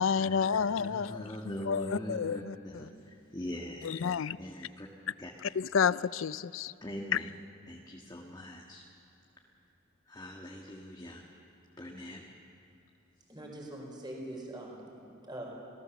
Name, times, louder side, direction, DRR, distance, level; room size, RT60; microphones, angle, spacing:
voice 1, 0.0-1.3 1.6-2.5 3.8-4.4 5.6-6.7, left 6 dB, 85° left, 0.5 m, -30 dB
voice 2, 0.8-4.1 4.4-4.9 5.2-5.3 6.8-7.3 7.7-8.8 10.1-11.2 11.8-12.2, left 1 dB, 20° left, 1.6 m, -42 dB
voice 3, 13.3-15.5, right 1 dB, 25° right, 4.6 m, -43 dB
27.0 x 18.0 x 7.1 m
head